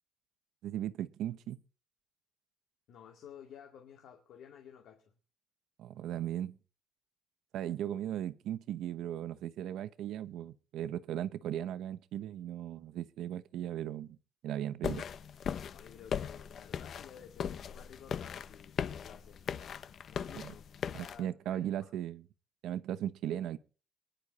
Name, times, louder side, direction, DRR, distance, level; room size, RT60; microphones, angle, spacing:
voice 1, 0.6-1.6 5.8-6.5 7.5-14.2 14.4-15.0 20.3-20.5 20.9-22.2 22.6-23.6, right 11 dB, 80° right, 0.9 m, -37 dB
voice 2, 2.9-5.1 15.7-19.6 20.0-21.9, left 8 dB, 75° left, 2.3 m, -54 dB
sound 1, 14.8-21.2, left 8 dB, 55° left, 0.8 m, -39 dB
24.0 x 10.5 x 4.2 m
cardioid pair, 125°, 0 cm